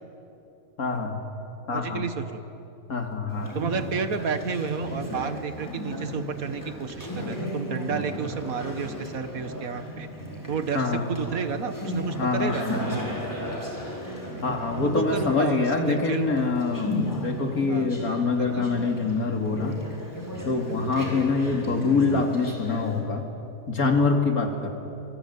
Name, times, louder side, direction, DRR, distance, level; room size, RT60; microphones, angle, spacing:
voice 1, 0.8-1.2 1.7-2.1 2.9-3.5 10.7-11.1 12.2-13.2 14.4-19.8 20.4-23.3 23.7-24.7, left 4 dB, 90° left, 4 dB, 2.9 m, -25 dB
voice 2, 1.7-2.4 3.5-10.1 10.5-12.7 14.8-16.3 17.7-17.9 18.4-18.7, right 6 dB, 75° right, 10 dB, 1.8 m, -31 dB
Conversation, 3.3-23.0, equal, 10° left, 4.7 m, -35 dB
25.0 x 23.5 x 9.5 m, 2.9 s
omnidirectional pair, 1.5 m